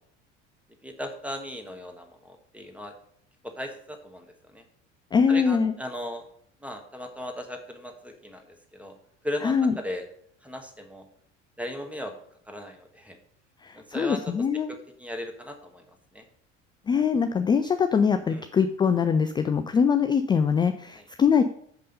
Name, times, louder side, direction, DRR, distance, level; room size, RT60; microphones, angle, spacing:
voice 1, 0.8-2.9 3.4-4.6 5.3-6.3 6.6-8.9 9.2-10.0 10.4-11.1 11.6-12.1 12.5-13.2 13.7-15.9 16.1-16.2 18.3-18.5 21.0-21.1, left 1 dB, 5° right, 4 dB, 1.4 m, -37 dB
voice 2, 5.1-5.7 9.4-9.7 13.6-14.7 16.9-21.4, left 6 dB, 15° left, 9 dB, 0.3 m, -23 dB
6.8 x 5.3 x 5.3 m, 0.67 s
figure-of-eight pair, 65°, 37 cm